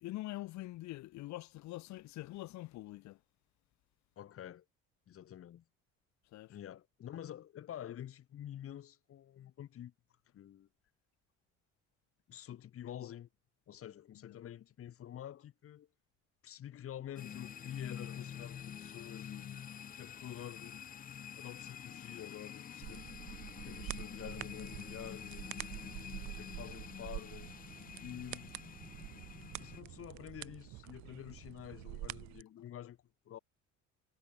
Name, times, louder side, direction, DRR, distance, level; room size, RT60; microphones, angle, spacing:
voice 1, 0.0-3.2 6.3-6.6, left 17 dB, 70° left, 2.2 m, -44 dB
voice 2, 4.2-4.6 5.1-5.6 6.5-9.9 10.3-10.7 12.3-13.3 13.7-15.9 16.4-19.6 20.0-20.8 21.4-23.1 23.6-25.4 26.4-27.5 28.0-28.6 29.6-33.0 33.3-33.4, left 11 dB, 50° left, 5.6 m, -48 dB
sound 1, 17.2-29.8, left 8 dB, 30° left, 0.7 m, -47 dB
sound 2, 22.8-32.4, right 18 dB, 70° right, 1.0 m, -47 dB
cardioid pair, 135°, 29 cm